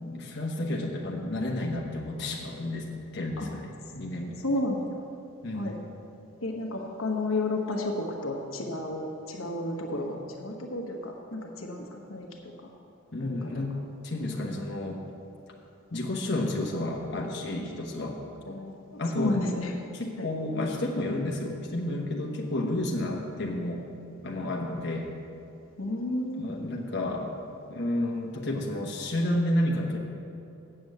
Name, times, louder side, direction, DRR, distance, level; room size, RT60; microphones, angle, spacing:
voice 1, 0.0-3.7 3.9-4.4 5.4-5.8 13.1-13.8 14.0-15.0 15.9-18.2 19.0-19.3 19.9-23.8 24.2-25.1 26.3-27.3 27.7-30.0, left 1 dB, 55° left, -1 dB, 1.1 m, -31 dB
voice 2, 4.4-4.8 5.5-5.8 6.4-12.7 13.2-13.5 18.5-19.7 20.2-20.3 25.8-26.5, left 2 dB, 80° left, 1 dB, 1.2 m, -32 dB
7.8 x 7.4 x 7.8 m, 2.7 s
head